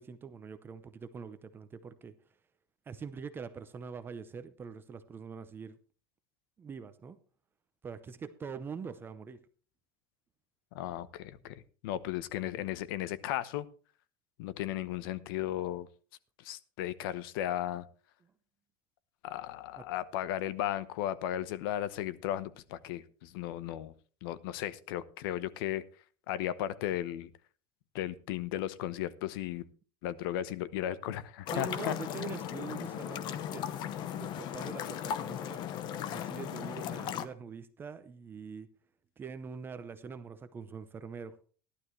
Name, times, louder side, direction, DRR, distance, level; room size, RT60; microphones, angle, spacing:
voice 1, 0.0-2.1 2.9-5.8 6.6-7.2 7.8-9.4 31.5-33.7 34.2-35.7 36.1-38.7 39.2-41.4, right 5 dB, 20° right, 11 dB, 0.7 m, -44 dB
voice 2, 10.7-13.7 14.4-15.9 16.4-17.9 19.2-23.9 24.2-25.8 26.3-27.3 27.9-29.6 30.0-31.9, left 12 dB, 80° left, 16 dB, 0.9 m, -35 dB
sound 1, 31.5-37.2, left 9 dB, 40° left, 0.8 m, -37 dB
15.0 x 11.5 x 3.2 m, 0.40 s
cardioid pair, 165°, 12 cm